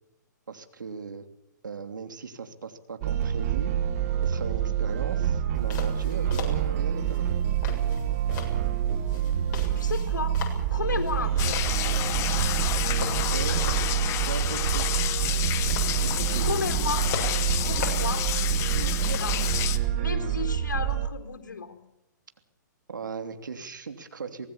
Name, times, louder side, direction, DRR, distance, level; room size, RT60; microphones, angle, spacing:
voice 1, 0.5-1.2 1.6-3.7 4.2-7.4 13.3-13.7 14.2-14.9 16.0-16.6 22.9-24.5, right 5 dB, 80° right, 8 dB, 3.0 m, -38 dB
sound 1, 3.0-21.1, right 9 dB, 45° right, 1.9 m, -27 dB
sound 2, 5.6-19.9, left 7 dB, 45° left, 7.4 m, -41 dB
voice 2, 9.8-10.4 10.7-11.6 16.4-17.1 17.6-18.3 18.6-19.4 19.9-21.8, left 5 dB, 80° left, 7 dB, 4.1 m, -33 dB
sound 3, 11.4-19.8, left 13 dB, 30° left, 1.3 m, -30 dB
25.0 x 19.0 x 7.2 m, 0.86 s
hypercardioid pair, 125°, 10 cm